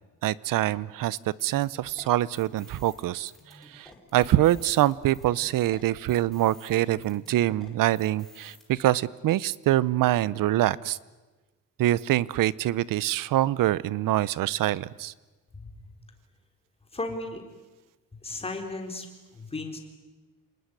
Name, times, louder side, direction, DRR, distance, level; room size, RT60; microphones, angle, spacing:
voice 1, 0.2-3.3 3.7-11.0 11.8-15.1, right 14 dB, 70° right, 21 dB, 0.8 m, -25 dB
sound 1, 1.2-8.7, left 1 dB, ahead, 4.6 m, -53 dB
voice 2, 16.9-17.4 18.2-19.1 19.3-19.8, left 2 dB, 15° left, 4 dB, 3.6 m, -34 dB
29.0 x 20.0 x 9.8 m, 1.2 s
cardioid pair, 155°, 34 cm